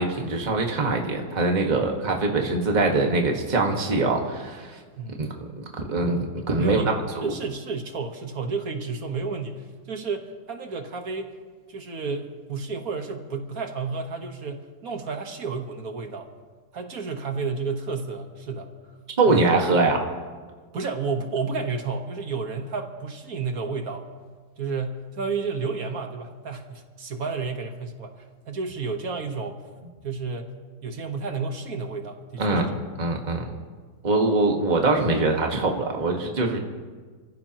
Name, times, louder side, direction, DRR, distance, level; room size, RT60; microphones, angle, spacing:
voice 1, 0.0-4.8 5.2-5.3 5.6-6.8 7.2-7.3 19.2-20.0 32.4-32.7 33.0-33.4 34.0-36.6, right 3 dB, 25° right, 1 dB, 1.6 m, -23 dB
voice 2, 5.0-5.3 6.5-11.3 11.7-16.3 16.7-18.7 19.3-19.5 20.7-24.0 24.6-29.6 30.0-30.5 30.8-32.8 33.4-33.6 36.5-36.6, right 4 dB, 55° right, 5 dB, 1.8 m, -31 dB
29.5 x 15.0 x 3.0 m, 1.5 s
omnidirectional pair, 1.9 m